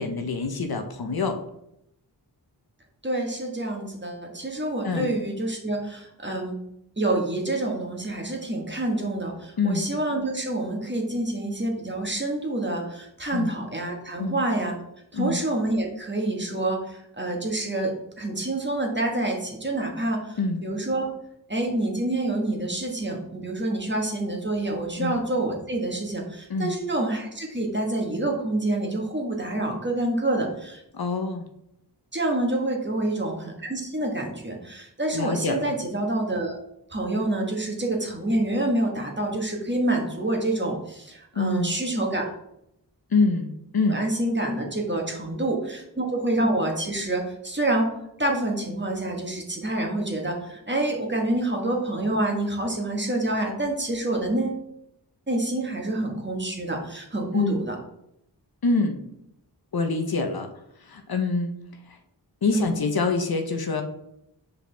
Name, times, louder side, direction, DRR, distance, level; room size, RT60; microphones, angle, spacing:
voice 1, 0.0-1.4 4.8-5.1 9.6-9.9 13.3-13.5 14.2-14.4 15.1-15.4 20.4-20.6 25.0-25.1 26.5-26.7 30.9-31.4 35.1-35.7 41.4-41.7 43.1-44.0 57.3-57.6 58.6-59.0 59.7-60.5 60.8-61.6 61.9-62.0 62.4-63.8, left 3 dB, 60° left, 5 dB, 0.8 m, -25 dB
voice 2, 3.0-6.6 7.0-14.7 15.1-21.1 21.5-30.8 32.1-36.5 36.9-42.3 43.9-54.6 55.3-57.7 62.5-62.7, right 1 dB, 25° right, 0 dB, 1.4 m, -27 dB
6.6 x 4.9 x 3.4 m, 0.79 s
wide cardioid pair, 75°, 42 cm